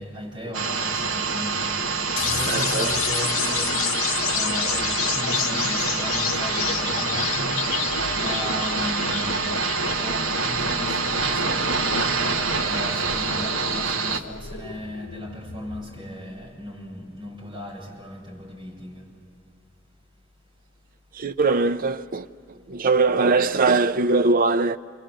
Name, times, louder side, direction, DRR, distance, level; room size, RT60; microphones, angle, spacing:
voice 1, 0.0-1.8 2.2-3.9 4.3-7.6 8.1-12.2 12.6-19.1, equal, 25° right, 7.0 m, -36 dB
sound 1, 0.5-14.2, right 4 dB, 75° right, 1.2 m, -26 dB
sound 2, 2.2-16.1, left 8 dB, 75° left, 1.0 m, -30 dB
voice 2, 2.5-2.9 21.1-22.3 22.7-24.8, right 3 dB, 45° right, 0.6 m, -21 dB
28.0 x 24.0 x 7.8 m
head